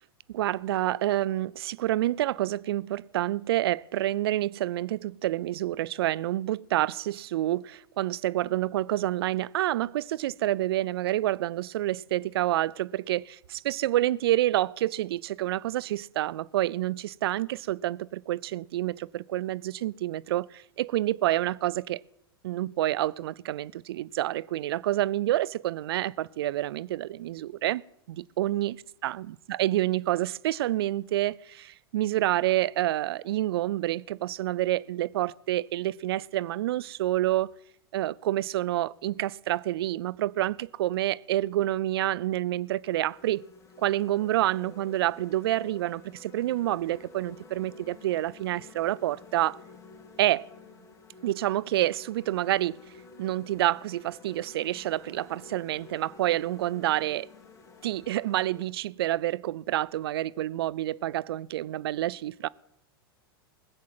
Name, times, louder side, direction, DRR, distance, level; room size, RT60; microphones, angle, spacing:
voice 1, 0.3-22.0 22.4-27.8 28.1-28.8 29.0-37.5 37.9-43.4 43.8-49.6 50.2-50.5 51.2-52.8 53.2-57.3 57.8-62.5, right 14 dB, 75° right, 0.4 m, -28 dB
sound 1, 42.4-58.6, left 4 dB, 25° left, 2.5 m, -51 dB
19.5 x 7.6 x 7.6 m
hypercardioid pair, 105°, 13 cm